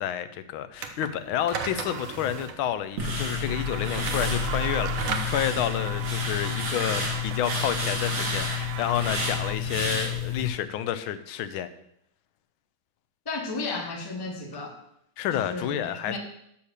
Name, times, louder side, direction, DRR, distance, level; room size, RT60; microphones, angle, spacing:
voice 1, 0.0-11.7 15.2-16.2, left 10 dB, 85° left, 12 dB, 1.4 m, -30 dB
sound 1, 0.7-9.2, right 5 dB, 60° right, 1.0 m, -37 dB
sound 2, 3.0-10.5, left 4 dB, 40° right, 2.2 m, -29 dB
sound 3, 3.5-9.6, right 8 dB, 75° right, 1.4 m, -39 dB
voice 2, 13.3-14.8 15.4-16.2, left 3 dB, 25° left, 3 dB, 0.5 m, -34 dB
6.4 x 5.6 x 6.6 m, 0.75 s
omnidirectional pair, 2.2 m